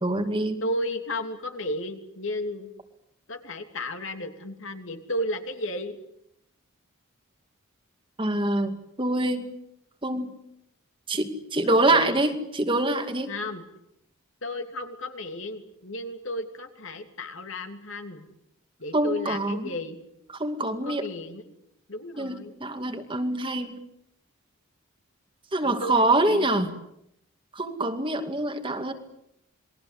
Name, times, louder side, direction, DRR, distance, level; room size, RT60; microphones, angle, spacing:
voice 1, 0.0-0.6 8.2-9.5 10.0-10.3 11.1-13.3 18.9-19.7 20.4-21.1 22.2-23.8 25.5-26.7 27.5-28.9, right 2 dB, 25° right, 6 dB, 2.3 m, -25 dB
voice 2, 0.6-2.7 3.3-6.0 11.6-12.2 13.3-13.6 14.4-18.3 18.8-20.0 20.7-21.5 21.9-22.5 25.6-26.5, left 1 dB, 60° left, 6 dB, 3.0 m, -33 dB
28.5 x 22.5 x 8.3 m, 0.80 s
head